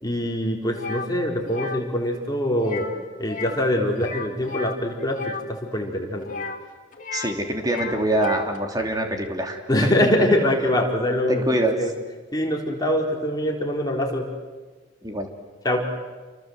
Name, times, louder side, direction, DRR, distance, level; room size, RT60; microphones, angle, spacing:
voice 1, 0.0-2.9 3.2-5.2 5.5-6.3 9.7-11.9 12.3-14.3 15.6-15.9, left 1 dB, 20° left, 0 dB, 4.0 m, -23 dB
sound 1, 0.7-1.1 1.4-1.8 2.6-3.0 3.2-3.6 3.9-5.4 6.2-7.3 7.6-8.6, left 4 dB, 45° left, 2.6 m, -34 dB
voice 2, 7.1-9.6 11.5-11.8 15.0-15.3, right 1 dB, 20° right, 3 dB, 3.2 m, -24 dB
29.5 x 23.5 x 8.1 m, 1.4 s
head